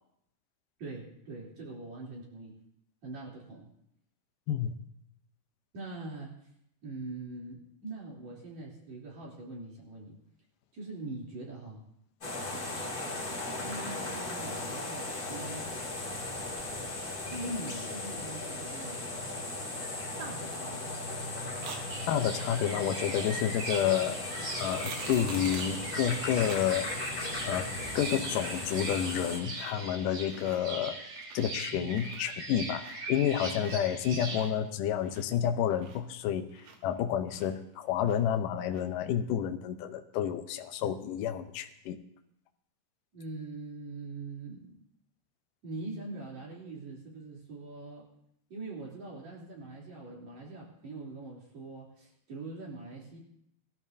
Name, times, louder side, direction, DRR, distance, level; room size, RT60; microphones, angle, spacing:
voice 1, 0.8-2.5 3.0-3.7 5.7-6.3 6.8-10.1 10.7-11.8 13.6-15.7 17.1-19.0 20.2-20.9 31.7-31.9 43.1-44.8 45.6-48.0 48.5-53.2, right 2 dB, 45° right, -4 dB, 4.4 m, -42 dB
sound 1, 12.2-29.4, left 2 dB, 25° left, 2.4 m, -37 dB
sound 2, 21.6-21.8 24.5-25.8 26.5-26.6 27.0-27.1 27.5-28.0 28.3-28.9 29.4-29.8 30.1-30.6 31.0-31.6 31.9-33.9 34.2-37.0 37.3-38.4 38.7-38.8, right 5 dB, 75° right, 3.4 m, -47 dB
sound 3, 21.9-34.5, right 2 dB, 90° right, 7.2 m, -40 dB
voice 2, 22.1-24.3 24.6-26.9 27.5-27.7 27.9-31.0 31.3-42.0, left 9 dB, 75° left, 6 dB, 2.0 m, -30 dB
21.0 x 13.0 x 2.7 m, 0.76 s
omnidirectional pair, 4.7 m